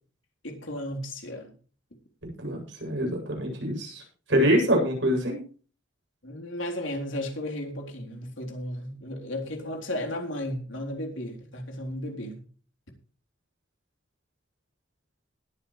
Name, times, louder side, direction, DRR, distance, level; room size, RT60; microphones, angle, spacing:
voice 1, 0.4-1.5 6.2-12.4, left 1 dB, 80° left, 3.8 m, -34 dB
voice 2, 2.4-4.0 4.3-5.4, equal, 70° right, 8.0 m, -25 dB
20.0 x 9.8 x 3.3 m
head